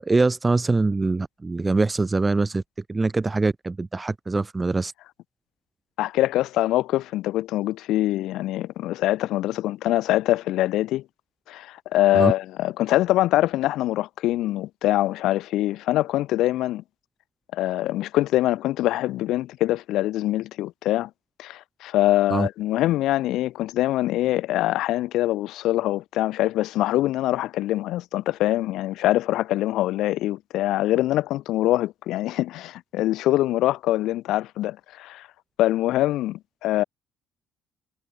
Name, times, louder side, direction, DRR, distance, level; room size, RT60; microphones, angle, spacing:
voice 1, 0.0-2.6 2.9-4.9 12.1-12.3 22.3-22.5, right 3 dB, 20° right, 8.0 m, -23 dB
voice 2, 6.0-11.0 11.5-16.8 17.5-21.1 21.4-35.3 35.6-36.8, left 15 dB, 75° left, 2.4 m, -24 dB
cardioid pair, 95°, 0 cm